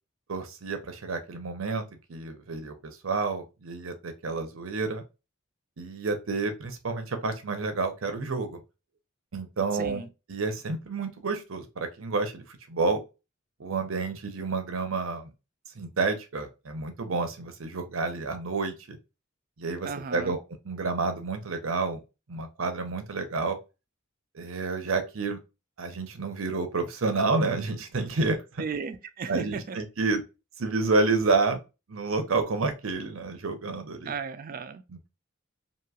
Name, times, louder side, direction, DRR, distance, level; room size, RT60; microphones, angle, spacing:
voice 1, 0.3-5.0 5.8-8.6 9.3-10.0 10.3-13.0 13.6-15.3 15.7-19.0 19.6-20.4 20.6-22.0 22.3-23.6 24.3-25.4 25.8-28.6 29.3-30.2 30.6-31.6 31.9-34.1 34.9-35.1, right 3 dB, 70° right, 0.7 m, -29 dB
voice 2, 9.7-10.1 19.8-20.4 28.6-29.8 34.0-34.8, right 5 dB, 45° right, 0.4 m, -35 dB
3.0 x 2.6 x 2.3 m
head